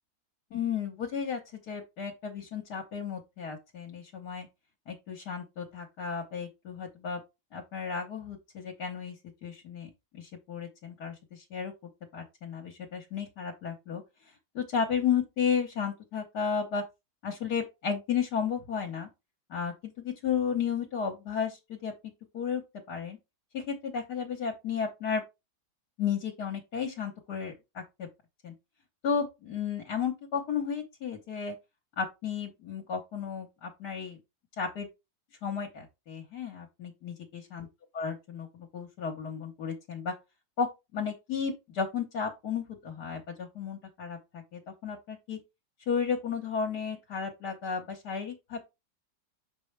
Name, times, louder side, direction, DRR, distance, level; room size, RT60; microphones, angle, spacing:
voice 1, 0.5-1.4 1.7-4.5 4.9-7.2 7.5-9.2 9.4-11.7 12.1-14.0 14.6-16.8 17.2-19.1 19.5-21.9 22.3-22.6 22.9-23.2 23.5-25.2 26.0-28.1 28.4-28.5 29.0-31.6 32.0-34.2 34.6-34.9 35.4-37.7 37.9-40.1 40.6-40.7 40.9-45.4 45.9-48.6, left 6 dB, 65° left, 1.7 m, -33 dB
6.2 x 5.1 x 3.3 m
omnidirectional pair, 1.9 m